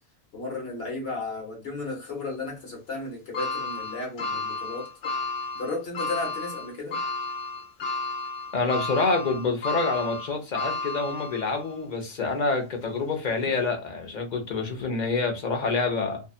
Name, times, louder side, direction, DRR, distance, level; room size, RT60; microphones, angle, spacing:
voice 1, 0.3-4.9 5.5-7.0, left 3 dB, 65° left, 1.2 m, -34 dB
sound 1, 3.3-11.7 12.2-12.3 13.5-13.6, left 3 dB, 90° left, 1.1 m, -32 dB
voice 2, 8.5-16.2, left 3 dB, 50° left, 0.7 m, -27 dB
2.7 x 2.3 x 2.3 m
omnidirectional pair, 1.1 m